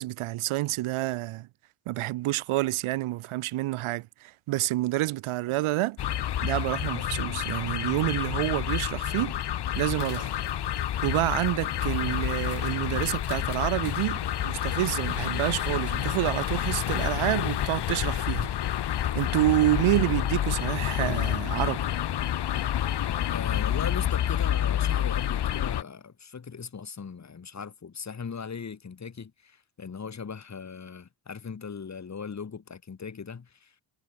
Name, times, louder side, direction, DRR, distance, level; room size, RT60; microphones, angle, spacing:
voice 1, 0.0-1.5 1.9-6.0 6.4-9.4 9.8-10.3 11.0-18.5 19.1-21.9, right 17 dB, 75° right, 0.6 m, -28 dB
sound 1, 6.0-25.8, left 11 dB, 55° left, 1.1 m, -29 dB
voice 2, 23.3-33.7, left 6 dB, 35° left, 3.5 m, -39 dB
wide cardioid pair, 145°, 49 cm